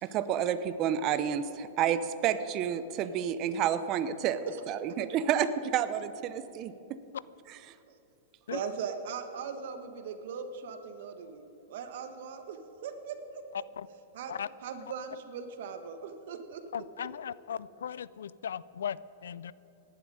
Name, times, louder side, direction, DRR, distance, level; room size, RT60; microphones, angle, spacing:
voice 1, 0.0-4.4 4.7-7.0, right 9 dB, 40° right, 13 dB, 0.8 m, -30 dB
voice 2, 8.5-11.4 11.7-13.4 14.1-14.3 14.6-16.6 17.0-17.1, right 6 dB, 65° right, 8 dB, 1.4 m, -39 dB
voice 3, 16.7-19.5, left 8 dB, 85° left, 19 dB, 0.4 m, -37 dB
18.0 x 11.5 x 4.9 m, 2.9 s
hypercardioid pair, 130°, 0 cm